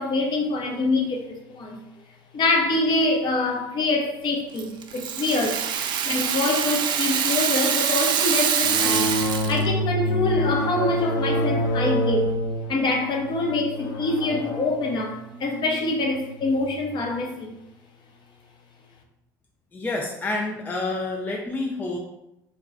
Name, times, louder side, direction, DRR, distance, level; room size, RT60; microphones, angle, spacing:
voice 1, 0.0-1.8 2.3-5.6 6.0-9.0 9.5-12.4 12.7-17.5, left 2 dB, 45° left, 1 dB, 0.8 m, -25 dB
Rattle (instrument), 4.6-9.7, right 8 dB, 45° right, 0.4 m, -24 dB
sound 1, 8.6-16.7, equal, 90° left, 1.3 m, -27 dB
voice 2, 19.7-22.0, left 2 dB, 15° left, 0 dB, 0.5 m, -28 dB
3.0 x 2.2 x 3.7 m, 0.86 s
hypercardioid pair, 65°, 11 cm